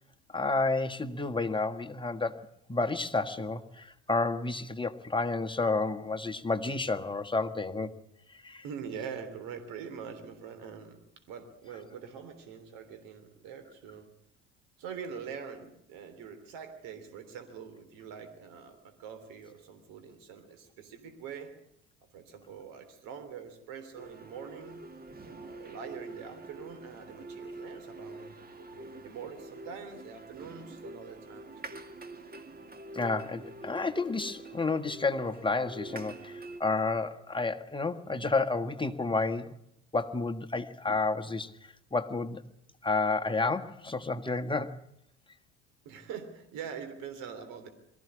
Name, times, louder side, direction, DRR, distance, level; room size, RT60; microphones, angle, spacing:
voice 1, 0.3-8.0 8.4-8.6 32.9-39.6 39.9-41.5 41.9-42.4 42.8-44.8, left 3 dB, 15° left, 6 dB, 1.6 m, -30 dB
voice 2, 8.6-14.1 14.8-21.5 22.1-24.9 25.4-28.4 28.7-31.5 45.9-47.7, right 7 dB, 65° right, 8 dB, 3.5 m, -44 dB
sound 1, 24.0-36.6, right 2 dB, 25° right, 2.4 m, -46 dB
23.0 x 15.0 x 9.7 m, 0.75 s
hypercardioid pair, 65°, 35 cm